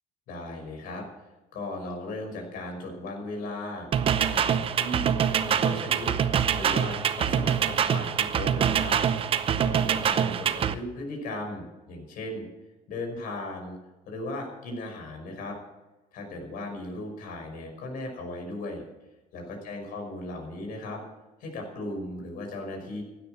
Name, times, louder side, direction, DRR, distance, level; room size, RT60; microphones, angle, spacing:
voice 1, 0.3-1.0 1.5-5.1 5.4-6.1 6.5-9.0 9.6-12.5 12.9-13.7 14.1-15.6 16.1-18.8 19.3-21.0 21.4-23.0, left 2 dB, 65° left, 3 dB, 5.6 m, -37 dB
sound 1, 3.9-10.7, right 8 dB, 35° right, 0.8 m, -25 dB
sound 2, 5.1-10.1, right 3 dB, 50° left, 1.5 m, -48 dB
16.0 x 9.9 x 6.6 m, 1.1 s
cardioid pair, 150°, 16 cm